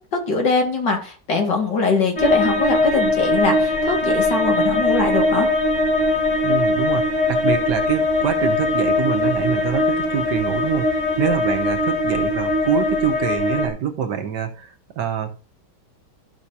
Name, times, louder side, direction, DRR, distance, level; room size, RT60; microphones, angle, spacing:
voice 1, 0.1-5.5, left 4 dB, 80° left, 1 dB, 2.6 m, -22 dB
sound 1, 2.2-13.7, left 1 dB, 25° left, 1.4 m, -20 dB
voice 2, 6.4-15.4, right 8 dB, 70° right, 6 dB, 1.6 m, -25 dB
13.5 x 5.6 x 2.8 m, 0.38 s
omnidirectional pair, 1.9 m